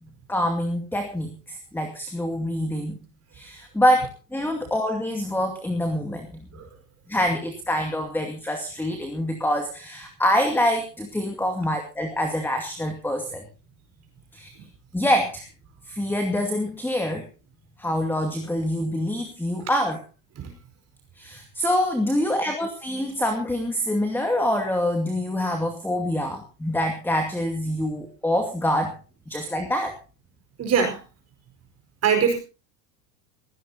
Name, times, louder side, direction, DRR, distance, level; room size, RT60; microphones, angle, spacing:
voice 1, 0.3-3.0 3.3-6.3 7.1-13.4 14.3-14.5 14.9-15.5 15.9-17.2 17.8-20.0 21.2-29.0 29.3-30.0, left 1 dB, 5° left, 4 dB, 2.3 m, -25 dB
voice 2, 30.6-31.0 32.0-32.4, right 6 dB, 30° right, 4 dB, 5.0 m, -23 dB
21.0 x 17.0 x 2.9 m, 0.33 s
supercardioid pair, 130°, 48 cm